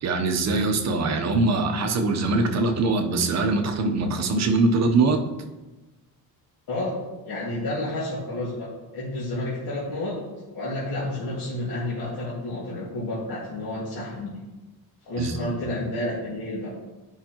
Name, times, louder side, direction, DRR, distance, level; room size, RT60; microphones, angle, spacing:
voice 1, 0.0-5.2 15.2-15.5, right 3 dB, 45° right, 4 dB, 0.9 m, -22 dB
voice 2, 7.3-10.2 10.5-14.4 15.0-16.7, left 1 dB, 65° left, -7 dB, 2.0 m, -30 dB
12.0 x 5.6 x 3.0 m, 1.1 s
cardioid pair, 160°, 38 cm